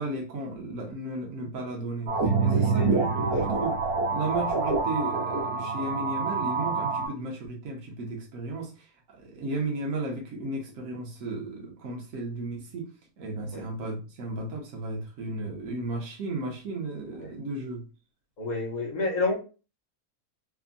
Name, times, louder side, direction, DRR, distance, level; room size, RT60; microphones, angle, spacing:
voice 1, 0.0-3.8 4.1-8.7 9.2-12.9 13.2-17.8, right 2 dB, 65° right, 0 dB, 1.2 m, -34 dB
sound 1, 2.1-7.1, right 4 dB, 90° right, 1.5 m, -26 dB
voice 2, 2.6-3.4 13.5-13.6 17.2-17.3 18.4-19.3, left 3 dB, 40° left, -2 dB, 0.7 m, -30 dB
3.5 x 2.1 x 2.5 m, 0.33 s
omnidirectional pair, 1.6 m